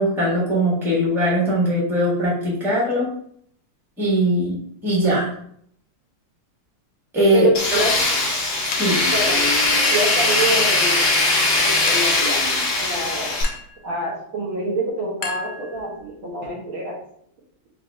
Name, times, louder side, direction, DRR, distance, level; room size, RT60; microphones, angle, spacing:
voice 1, 0.0-3.1 4.0-5.3 7.1-7.8 8.8-9.0, equal, ahead, -7 dB, 1.1 m, -20 dB
voice 2, 7.3-7.9 9.1-9.5 9.9-11.3 11.6-12.4 12.8-13.4 13.8-16.9, right 1 dB, 65° right, -4 dB, 2.2 m, -26 dB
Tools, 7.5-13.4, left 2 dB, 50° left, 1.0 m, -20 dB
Chink clink, 7.8-8.3 8.7-9.2 9.8-10.8 11.9-12.3 13.4-13.8 15.2-16.0, left 5 dB, 75° left, 1.0 m, -33 dB
4.8 x 2.7 x 3.3 m, 0.65 s
omnidirectional pair, 2.4 m